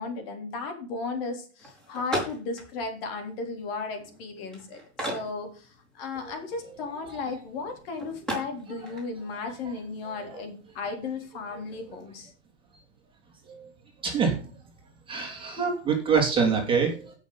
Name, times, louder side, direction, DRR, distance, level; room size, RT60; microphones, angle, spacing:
voice 1, 0.0-12.3, left 4 dB, 55° left, 4 dB, 3.8 m, -35 dB
sound 1, 1.6-12.1, equal, ahead, 4.9 m, -40 dB
voice 2, 8.7-9.0 9.5-9.8 10.0-10.4 13.5-13.7 14.0-14.5 15.1-17.1, right 5 dB, 15° right, 1 dB, 2.7 m, -27 dB
16.5 x 6.6 x 4.0 m, 0.38 s
supercardioid pair, 160°, 34 cm